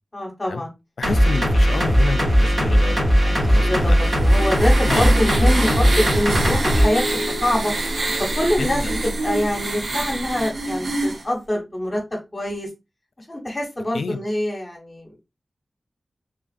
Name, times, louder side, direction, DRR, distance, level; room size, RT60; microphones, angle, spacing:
voice 1, 0.1-0.7 3.4-7.7 8.2-12.7 13.3-15.2, left 1 dB, 35° left, 1.1 m, -25 dB
voice 2, 1.0-4.0 4.9-5.2 8.6-8.9 13.9-14.2, left 4 dB, 85° left, 0.3 m, -29 dB
sound 1, 1.0-6.9, equal, 50° right, 1.6 m, -18 dB
Car, 3.7-9.2, equal, 5° left, 0.9 m, -32 dB
sound 2, 3.7-11.2, right 2 dB, 75° right, 0.6 m, -27 dB
3.4 x 2.3 x 2.4 m
cardioid pair, 50°, 0 cm